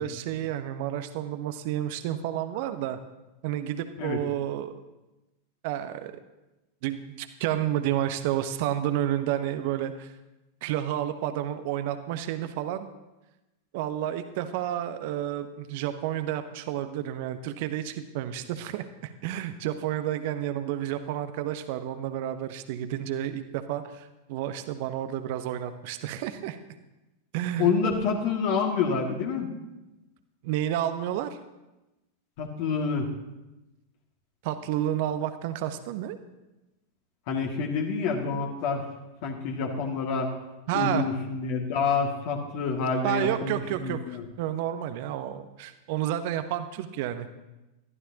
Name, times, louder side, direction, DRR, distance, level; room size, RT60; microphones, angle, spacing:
voice 1, 0.0-3.0 3.4-4.7 5.6-6.1 6.8-10.1 10.6-12.9 13.7-26.6 27.3-27.7 30.4-31.4 34.4-36.2 40.7-41.1 43.0-47.3, right 11 dB, 50° right, 10 dB, 1.0 m, -30 dB
voice 2, 27.6-29.5 32.4-33.1 37.3-38.8 39.2-40.3 40.7-44.3, left 5 dB, 45° left, 1 dB, 2.1 m, -27 dB
22.0 x 14.5 x 2.9 m, 1.0 s
figure-of-eight pair, 90°, 0 cm